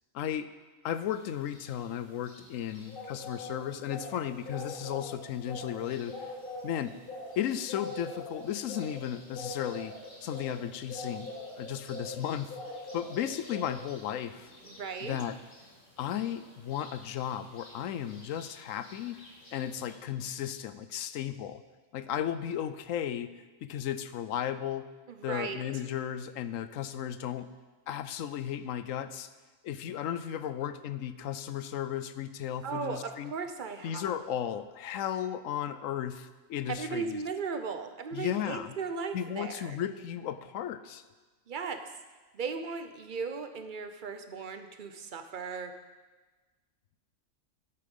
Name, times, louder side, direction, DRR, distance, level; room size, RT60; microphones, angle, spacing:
voice 1, 0.1-0.5 0.8-6.3 6.6-7.0 7.4-12.6 12.9-14.5 15.0-15.4 16.0-19.2 19.5-21.6 21.9-23.3 23.6-24.9 25.2-27.5 27.9-29.3 29.6-33.3 33.8-37.2 38.1-38.7 39.1-41.0, left 10 dB, 75° left, 13 dB, 1.0 m, -35 dB
sound 1, 1.1-19.9, left 2 dB, 40° left, 2.0 m, -44 dB
voice 2, 14.6-15.2 25.1-25.6 32.6-34.2 36.7-39.8 41.5-41.8 42.3-45.7, right 5 dB, 45° right, 8 dB, 0.8 m, -37 dB
11.5 x 8.4 x 5.4 m, 1.3 s
omnidirectional pair, 1.4 m